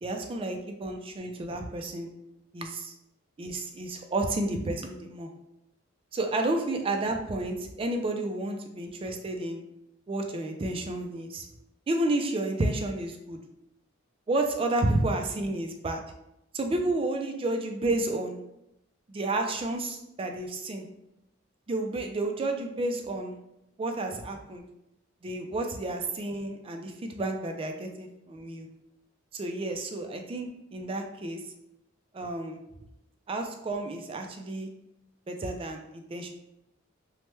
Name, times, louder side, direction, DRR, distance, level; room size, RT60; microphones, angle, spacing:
voice 1, 0.0-2.1 2.5-2.9 3.4-5.3 6.1-9.6 10.1-11.5 11.9-13.4 14.3-16.0 16.5-18.4 19.1-20.9 21.7-23.4 23.8-24.6 25.2-28.7 29.3-31.4 32.1-32.6 33.3-34.7 35.3-36.3, right 2 dB, 30° right, 4 dB, 0.3 m, -31 dB
3.0 x 2.1 x 3.2 m, 0.84 s
head